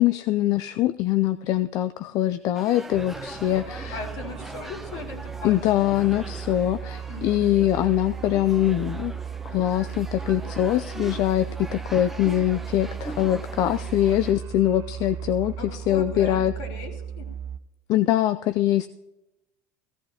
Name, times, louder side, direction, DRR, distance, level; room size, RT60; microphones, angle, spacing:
voice 1, 0.0-4.0 5.4-9.1 9.5-16.5 17.9-18.9, left 13 dB, 55° left, 11 dB, 0.4 m, -23 dB
sound 1, 2.5-14.3, right 1 dB, 5° right, 0.7 m, -41 dB
sound 2, 2.9-17.6, right 8 dB, 50° right, 0.5 m, -36 dB
voice 2, 3.9-5.6 7.1-7.5 15.6-17.3, left 3 dB, 70° left, 0 dB, 3.8 m, -38 dB
15.5 x 15.0 x 2.8 m, 0.99 s
supercardioid pair, 105°, 8 cm